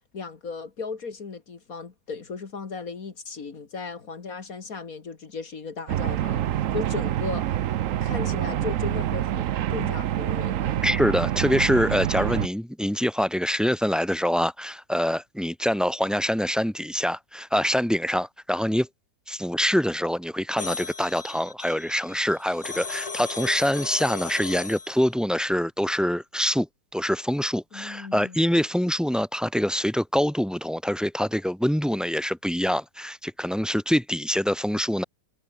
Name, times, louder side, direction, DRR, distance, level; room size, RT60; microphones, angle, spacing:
voice 1, 0.1-7.6 8.0-10.8 27.7-28.4, left 4 dB, 60° left, 2.4 m, -36 dB
sound 1, 5.9-12.5, right 12 dB, 60° right, 1.0 m, -26 dB
voice 2, 10.8-18.9 19.3-26.7 26.9-35.0, equal, ahead, 3.1 m, -25 dB
sound 2, 20.6-25.0, left 4 dB, 25° left, 1.1 m, -36 dB
omnidirectional pair, 1.7 m